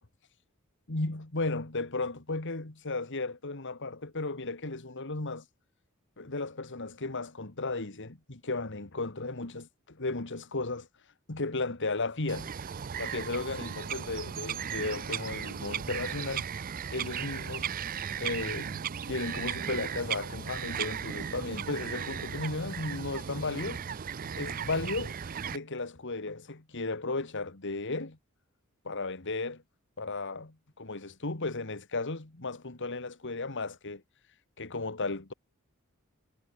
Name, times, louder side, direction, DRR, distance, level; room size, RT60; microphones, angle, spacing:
voice 1, 0.9-5.4 6.2-10.9 11.3-12.5 13.0-16.5 16.9-17.7 18.2-23.9 24.3-25.1 25.5-28.2 28.8-29.6 30.0-34.0 34.6-35.3, left 3 dB, 55° left, 2.0 m, -35 dB
Bird vocalization bird call bird song, 12.3-25.6, right 7 dB, 40° right, 0.5 m, -36 dB
head